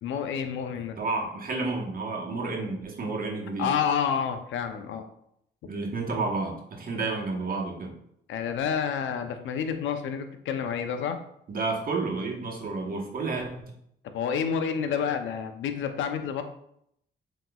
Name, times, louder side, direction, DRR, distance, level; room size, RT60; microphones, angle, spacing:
voice 1, 0.0-1.0 3.6-5.1 8.3-11.2 14.1-16.4, left 7 dB, 75° left, 7 dB, 0.6 m, -29 dB
voice 2, 1.0-3.7 5.7-7.9 11.5-13.7, right 3 dB, 45° right, 0 dB, 1.1 m, -31 dB
7.4 x 3.0 x 2.3 m, 0.73 s
cardioid pair, 90°, 20 cm